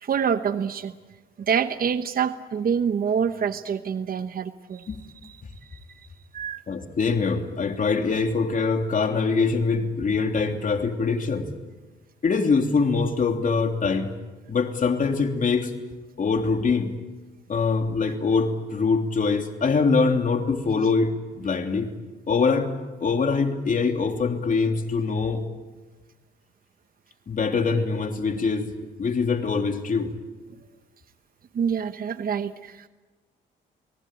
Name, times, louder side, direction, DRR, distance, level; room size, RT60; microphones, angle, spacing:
voice 1, 0.0-0.9 1.4-4.9 5.2-5.3 5.6-6.1 6.3-6.6 31.5-32.9, right 7 dB, 45° right, 10 dB, 1.1 m, -26 dB
voice 2, 6.7-11.5 12.2-14.1 14.5-15.7 16.2-16.9 17.5-21.9 22.3-22.7 23.0-25.4 27.3-28.7 29.0-30.1, left 4 dB, 40° left, 5 dB, 3.2 m, -23 dB
30.0 x 19.0 x 8.9 m, 1.3 s
cardioid pair, 90°, 20 cm